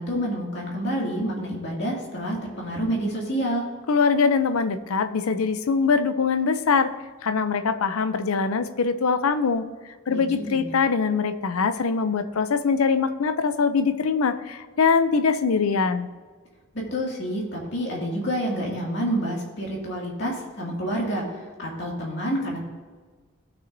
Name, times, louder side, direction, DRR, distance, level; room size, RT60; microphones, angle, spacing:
voice 1, 0.0-3.7 10.1-10.7 16.7-22.6, equal, 55° left, -2 dB, 2.3 m, -28 dB
voice 2, 3.9-6.9 7.2-9.7 10.1-16.1, left 5 dB, 90° left, 11 dB, 0.5 m, -23 dB
16.0 x 6.2 x 2.7 m, 1.5 s
head